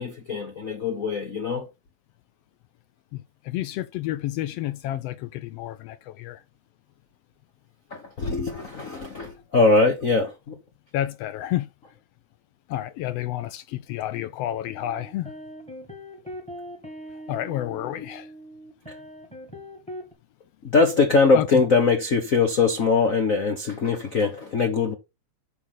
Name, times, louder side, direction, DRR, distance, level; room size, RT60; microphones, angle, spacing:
voice 1, 0.0-1.7 7.9-10.6 20.6-24.9, left 4 dB, 50° left, 1.0 m, -22 dB
voice 2, 3.1-6.4 10.9-11.7 12.7-15.3 17.3-18.3 21.3-21.5, left 13 dB, 80° left, 1.4 m, -30 dB
sound 1, 14.7-20.1, equal, 5° left, 1.6 m, -41 dB
7.7 x 5.7 x 5.8 m
omnidirectional pair, 3.3 m